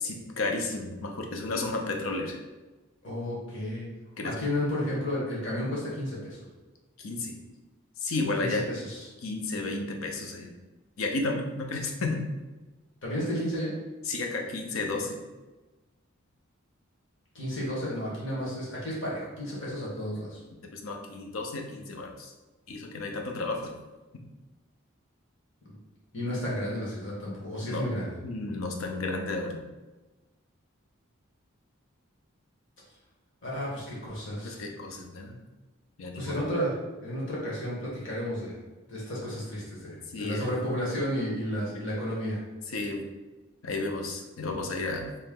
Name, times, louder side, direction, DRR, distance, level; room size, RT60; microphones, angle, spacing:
voice 1, 0.0-2.4 4.2-4.3 7.0-7.4 8.0-8.6 9.2-10.5 11.0-12.2 14.1-15.2 20.6-22.3 22.7-23.8 27.6-27.9 28.2-29.7 34.4-35.4 36.0-36.3 40.1-40.5 42.7-43.1 43.6-45.1, left 3 dB, 80° left, 2 dB, 0.6 m, -32 dB
voice 2, 3.0-3.9 4.2-6.4 8.4-9.0 13.0-13.7 17.3-20.4 26.1-28.2 33.4-34.6 36.1-36.7 37.0-38.6 38.9-42.4, equal, 65° left, -6 dB, 1.4 m, -32 dB
3.2 x 2.8 x 3.7 m, 1.1 s
head